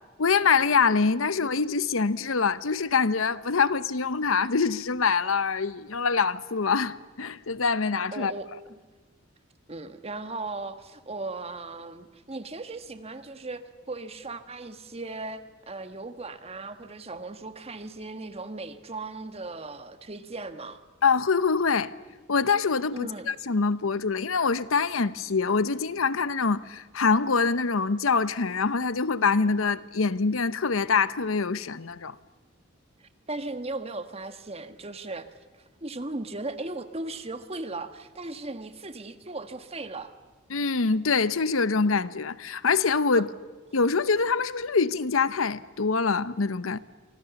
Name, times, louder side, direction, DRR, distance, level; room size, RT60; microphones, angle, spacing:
voice 1, 0.2-8.3 21.0-21.9 22.3-32.2 40.5-43.3 43.7-46.8, left 5 dB, 85° left, 0.9 m, -25 dB
voice 2, 8.1-8.8 9.7-13.6 13.9-20.8 22.9-23.3 33.3-35.3 35.8-40.1 43.1-43.2, right 2 dB, 30° right, 1.5 m, -37 dB
29.5 x 25.0 x 7.1 m
head